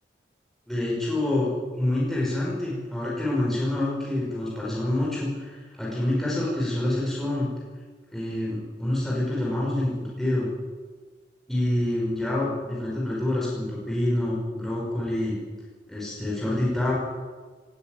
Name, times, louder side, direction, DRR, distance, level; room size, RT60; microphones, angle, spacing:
voice 1, 0.7-7.5 8.1-10.5 11.5-15.4 15.9-16.9, left 1 dB, ahead, -6 dB, 5.7 m, -27 dB
18.5 x 14.5 x 9.5 m, 1.4 s
head